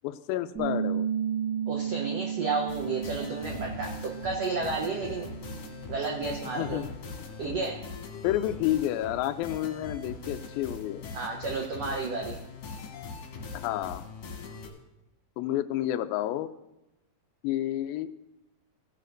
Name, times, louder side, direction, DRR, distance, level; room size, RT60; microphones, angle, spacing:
voice 1, 0.0-1.1 6.6-6.9 8.2-11.0 13.5-14.0 15.4-16.5 17.4-18.1, left 13 dB, 80° left, 9 dB, 2.3 m, -30 dB
Bass guitar, 0.5-6.8, right 8 dB, 60° right, 1.0 m, -34 dB
voice 2, 1.7-5.3 5.9-6.8 7.4-7.8 11.1-12.4, right 4 dB, 75° right, 0 dB, 1.4 m, -32 dB
sound 1, 2.7-14.7, left 3 dB, 65° left, 2.9 m, -41 dB
16.0 x 10.5 x 2.6 m, 0.94 s
omnidirectional pair, 4.3 m